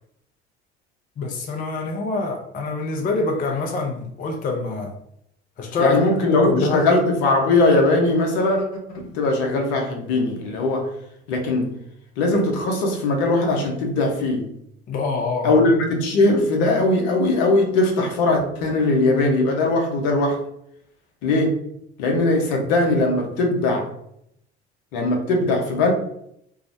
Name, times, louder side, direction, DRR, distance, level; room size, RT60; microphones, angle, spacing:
voice 1, 1.2-4.9 5.6-6.0 6.3-6.9 14.9-15.6, left 3 dB, 25° left, 0.4 m, -25 dB
voice 2, 5.8-10.9 11.3-11.8 12.2-14.5 15.4-20.4 21.2-21.6 22.0-23.9 24.9-25.9, left 2 dB, 60° left, 0.7 m, -20 dB
2.6 x 2.0 x 2.5 m
figure-of-eight pair, 60°, 34 cm